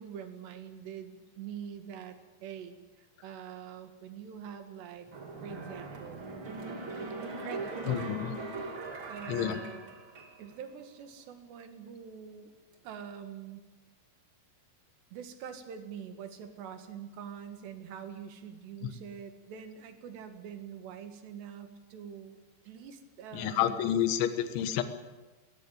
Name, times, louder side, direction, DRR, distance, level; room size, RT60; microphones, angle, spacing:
voice 1, 0.0-5.1 5.4-6.2 7.2-8.3 8.5-9.9 10.4-12.5 12.8-13.7 15.1-22.4 22.7-23.8, right 8 dB, 70° right, 7 dB, 3.9 m, -45 dB
sound 1, 5.1-10.6 11.0-11.1, right 3 dB, 35° right, 2.3 m, -40 dB
voice 2, 7.8-8.3 9.3-9.6 23.3-24.8, left 10 dB, 85° left, 9 dB, 3.6 m, -29 dB
21.0 x 19.0 x 8.8 m, 1.2 s
omnidirectional pair, 5.2 m